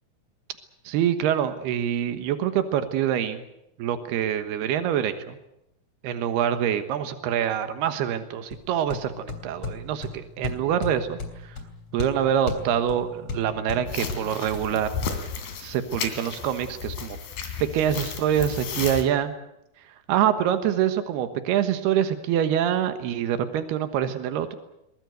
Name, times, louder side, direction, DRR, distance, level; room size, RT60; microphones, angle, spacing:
voice 1, 0.8-3.4 3.8-5.4 6.0-11.6 11.9-14.9 15.6-17.2 17.6-19.3 19.9-24.6, right 10 dB, 90° right, 9 dB, 3.3 m, -25 dB
sound 1, 8.5-15.1, left 4 dB, 45° left, 4.1 m, -36 dB
sound 2, 13.9-19.0, left 6 dB, 70° left, 4.4 m, -34 dB
22.5 x 21.0 x 8.0 m, 0.83 s
omnidirectional pair, 4.5 m